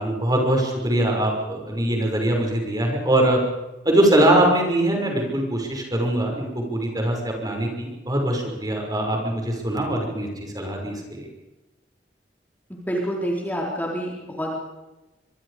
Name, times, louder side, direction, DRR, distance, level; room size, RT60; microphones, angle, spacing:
voice 1, 0.0-3.4 3.8-11.3, right 1 dB, 25° right, 1 dB, 6.2 m, -22 dB
voice 2, 12.7-14.6, equal, 10° left, -2 dB, 4.1 m, -27 dB
24.5 x 24.0 x 5.2 m, 1.0 s
head